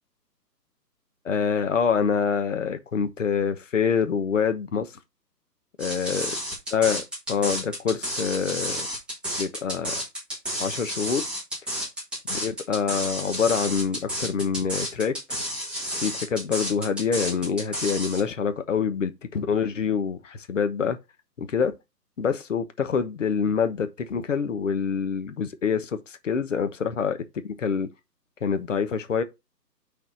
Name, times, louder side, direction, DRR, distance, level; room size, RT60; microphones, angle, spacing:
voice 1, 1.2-4.9 5.8-6.3 6.7-7.0 7.3-8.9 9.4-9.9 10.6-11.2 12.3-15.1 16.0-21.0 21.4-21.7 22.2-27.2 27.4-27.9 28.4-29.2, left 6 dB, 45° left, 1.2 m, -26 dB
sound 1, 5.8-18.2, equal, ahead, 1.6 m, -31 dB
6.7 x 4.2 x 5.6 m
figure-of-eight pair, 140°, 50 cm